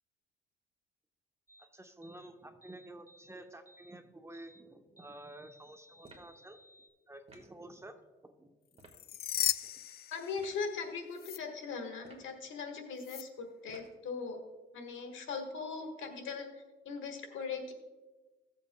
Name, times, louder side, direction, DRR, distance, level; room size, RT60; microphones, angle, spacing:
sound 1, 1.5-1.7 2.0-2.3 2.6-3.3 3.7-3.9 4.3-4.6 5.0-6.9, equal, 15° left, 1.3 m, -60 dB
voice 1, 1.7-6.6 7.1-8.0 8.4-8.5 8.8-8.9 9.6-9.7, right 1 dB, 15° right, 6 dB, 0.8 m, -51 dB
sound 2, 6.0-6.4 7.3-7.6 8.8-9.0 10.4-10.6 12.0-12.4 13.7-14.0, right 2 dB, 30° right, 1.6 m, -57 dB
sound 3, 8.8-10.8 11.2-11.4 13.0-13.2, left 11 dB, 50° left, 0.4 m, -36 dB
voice 2, 10.1-14.4 14.7-16.5 16.8-17.7, left 5 dB, 75° left, 4 dB, 1.5 m, -40 dB
15.5 x 7.5 x 2.3 m, 1.2 s
cardioid pair, 90°, 20 cm